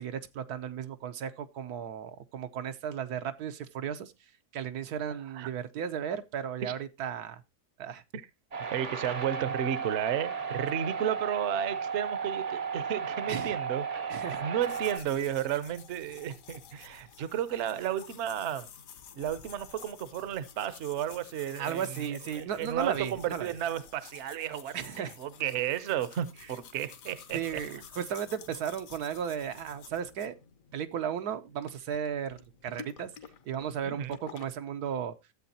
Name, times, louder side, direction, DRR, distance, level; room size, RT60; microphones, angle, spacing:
voice 1, 0.0-4.1 4.5-7.4 7.8-8.0 13.3-13.6 14.1-14.4 21.6-23.5 24.7-25.2 27.3-30.3 30.7-33.1 33.5-35.1, right 8 dB, 85° right, 1.3 m, -35 dB
sound 1, 8.5-15.0, right 6 dB, 40° right, 0.5 m, -34 dB
voice 2, 8.7-13.8 14.1-18.7 19.2-27.6 33.8-34.1, right 10 dB, 55° right, 0.9 m, -33 dB
sound 2, 14.6-34.5, left 7 dB, 65° left, 1.3 m, -51 dB
13.5 x 7.9 x 2.7 m
omnidirectional pair, 1.6 m